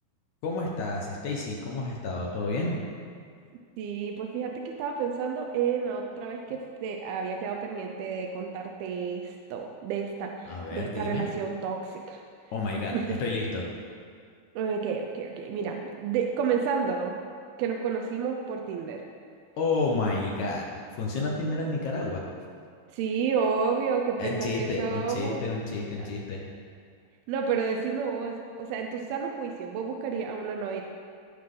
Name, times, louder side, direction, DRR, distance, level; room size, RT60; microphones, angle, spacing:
voice 1, 0.4-2.8 10.5-11.3 12.5-13.6 19.6-20.7 21.0-22.2 24.2-26.5, left 3 dB, 70° left, -2 dB, 1.9 m, -30 dB
voice 2, 3.8-12.2 12.9-13.2 14.6-17.2 17.6-19.0 22.9-25.4 26.0-26.1 27.3-30.8, right 6 dB, 80° right, 2 dB, 2.5 m, -30 dB
16.0 x 5.8 x 3.8 m, 2.2 s
omnidirectional pair, 4.4 m